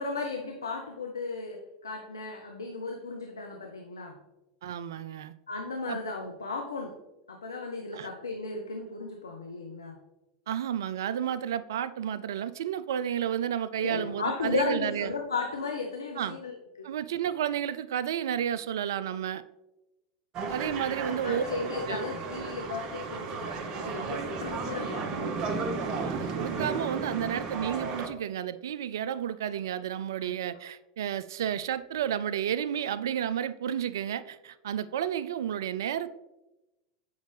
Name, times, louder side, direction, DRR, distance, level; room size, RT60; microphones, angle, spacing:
voice 1, 0.0-4.2 5.5-7.0 7.3-10.0 13.8-16.9 20.4-25.6 30.2-30.3, left 4 dB, 80° left, 3 dB, 0.6 m, -35 dB
voice 2, 4.6-5.3 5.9-6.0 7.9-8.1 10.5-15.1 16.2-16.4 16.8-19.4 20.5-21.4 21.9-22.1 26.0-36.1, right 9 dB, 70° right, 16 dB, 0.3 m, -31 dB
sound 1, 20.3-28.1, right 4 dB, 40° right, 0.9 m, -34 dB
7.9 x 5.2 x 3.2 m, 1.0 s
figure-of-eight pair, 85°, 2 cm